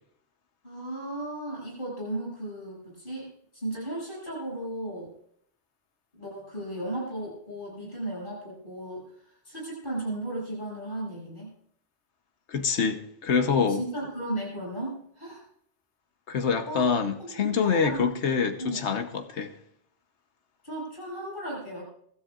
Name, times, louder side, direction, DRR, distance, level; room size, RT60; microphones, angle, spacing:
voice 1, 0.6-5.1 6.1-9.1 9.4-11.5 13.7-15.5 16.7-16.8 17.2-18.1 18.6-18.8 20.6-21.8, right 1 dB, 50° left, 7.5 m, -35 dB
voice 2, 12.5-13.8 16.3-19.5, left 6 dB, 85° left, 1.3 m, -26 dB
24.0 x 13.0 x 2.5 m
omnidirectional pair, 1.1 m